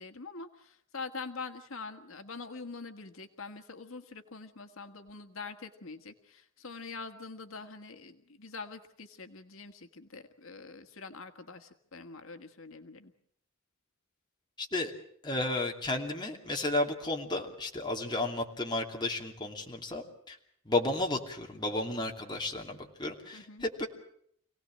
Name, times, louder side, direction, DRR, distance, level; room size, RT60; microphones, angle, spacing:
voice 1, 0.0-13.1 23.3-23.6, left 4 dB, 75° left, 7 dB, 1.7 m, -44 dB
voice 2, 14.6-14.9 15.2-20.4 20.7-23.9, left 2 dB, 20° left, 1 dB, 2.7 m, -33 dB
27.5 x 18.0 x 7.6 m, 0.68 s
head